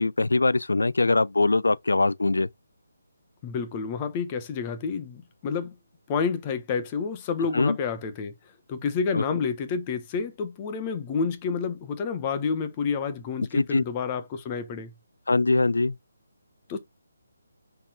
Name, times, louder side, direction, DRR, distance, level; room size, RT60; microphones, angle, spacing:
voice 1, 0.0-2.5 7.5-7.8 9.1-9.2 13.5-13.8 15.3-16.0, left 3 dB, 80° left, 0.4 m, -22 dB
voice 2, 3.4-5.7 6.1-8.3 8.7-14.9 16.7-16.8, left 5 dB, 25° left, 1.1 m, -29 dB
5.5 x 4.3 x 4.5 m
figure-of-eight pair, 150°, 0 cm